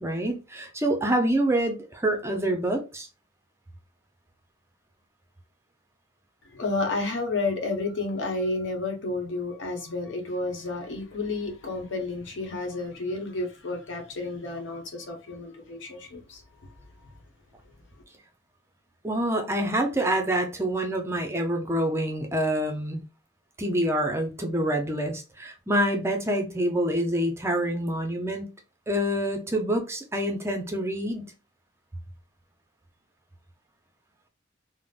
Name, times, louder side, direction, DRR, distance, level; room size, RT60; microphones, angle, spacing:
voice 1, 0.0-3.1 19.0-23.0 23.6-28.5 28.9-31.3, right 1 dB, 15° right, 0.5 m, -26 dB
voice 2, 6.5-17.1, left 3 dB, 85° left, 0.9 m, -31 dB
3.7 x 2.0 x 2.4 m
head